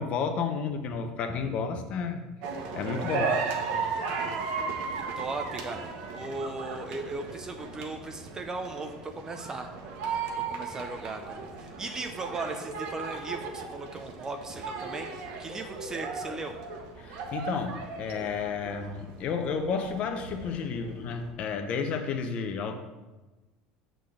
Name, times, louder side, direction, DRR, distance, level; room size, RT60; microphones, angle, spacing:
voice 1, 0.0-2.2 2.8-3.4 17.0-22.8, left 5 dB, 50° left, 6 dB, 0.9 m, -31 dB
sound 1, 2.4-21.3, right 5 dB, 70° right, 1.2 m, -36 dB
voice 2, 5.2-5.8 6.1-9.7 10.5-16.5, right 3 dB, 25° right, 5 dB, 0.7 m, -37 dB
6.6 x 3.9 x 6.3 m, 1.2 s
supercardioid pair, 95°, 3 cm